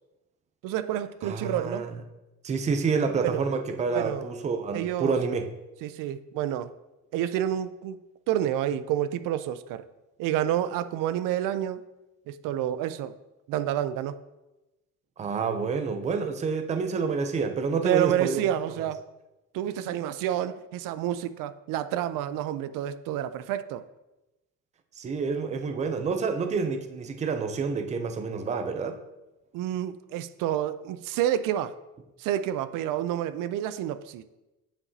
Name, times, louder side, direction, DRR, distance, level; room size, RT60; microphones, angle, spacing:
voice 1, 0.6-1.9 3.2-3.4 3.9-4.3 4.7-5.1 5.8-6.7 7.1-8.0 8.3-9.8 10.2-11.8 12.3-13.1 13.5-14.2 17.8-19.0 19.5-23.8 29.5-31.8 32.2-34.2, right 11 dB, 85° right, 12 dB, 0.5 m, -29 dB
voice 2, 1.2-1.9 2.4-5.5 15.2-18.4 19.9-20.0 25.0-29.0, right 5 dB, 20° right, 7 dB, 0.5 m, -28 dB
8.5 x 7.2 x 2.7 m, 1.0 s
cardioid pair, 170°, 32 cm